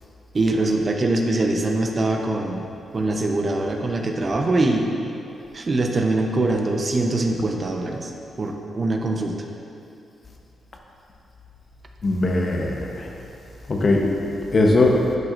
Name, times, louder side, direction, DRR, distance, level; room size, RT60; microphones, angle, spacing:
voice 1, 0.3-2.6 2.9-4.8 5.7-7.9 8.4-9.3, right 2 dB, 45° right, 2 dB, 0.7 m, -22 dB
voice 2, 12.0-13.1 13.7-14.1 14.5-15.0, left 2 dB, 50° left, 1 dB, 0.9 m, -19 dB
10.5 x 4.9 x 2.6 m, 2.7 s
supercardioid pair, 50°, 0 cm